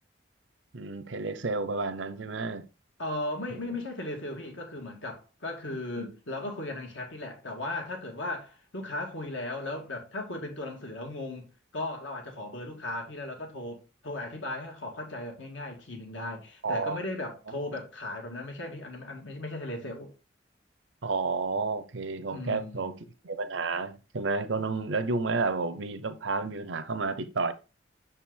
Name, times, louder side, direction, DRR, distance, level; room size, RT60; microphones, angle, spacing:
voice 1, 0.7-2.6 3.5-3.7 16.6-17.0 21.0-23.0 23.2-27.5, right 3 dB, 80° right, 0.7 m, -31 dB
voice 2, 3.0-20.1 22.3-23.0, left 2 dB, 85° left, 1.8 m, -37 dB
6.7 x 4.4 x 3.8 m
head